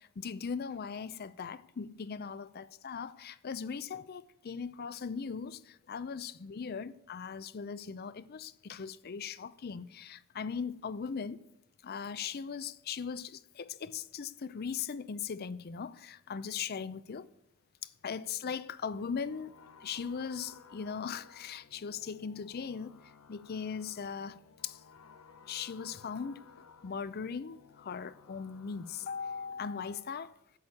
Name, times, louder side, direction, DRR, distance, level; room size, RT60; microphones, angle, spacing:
voice 1, 0.2-11.4 11.8-17.3 17.8-19.5 19.8-24.8 25.5-26.4 26.8-30.3, left 6 dB, 45° left, 0.4 m, -39 dB
sound 1, 18.9-29.6, left 5 dB, 85° left, 0.8 m, -57 dB
8.4 x 8.0 x 8.4 m
head